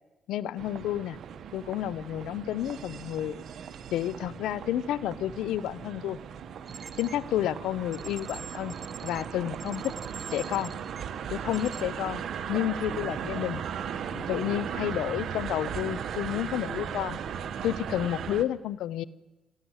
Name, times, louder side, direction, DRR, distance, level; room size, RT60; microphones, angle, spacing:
voice 1, 0.3-1.2 1.5-3.4 3.9-6.2 7.0-8.7 9.0-9.9 10.3-10.7 11.3-12.2 12.5-13.6 14.1-17.2 17.6-19.0, left 12 dB, 85° left, 19 dB, 0.7 m, -30 dB
sound 1, 0.6-18.4, right 8 dB, 65° right, 1.3 m, -37 dB
sound 2, 6.4-14.9, right 4 dB, 25° right, 3.5 m, -56 dB
sound 3, 6.7-7.2 7.9-11.0 11.5-11.8, right 5 dB, 40° right, 0.9 m, -44 dB
28.5 x 12.0 x 8.1 m, 1.1 s
cardioid pair, 90°, 0 cm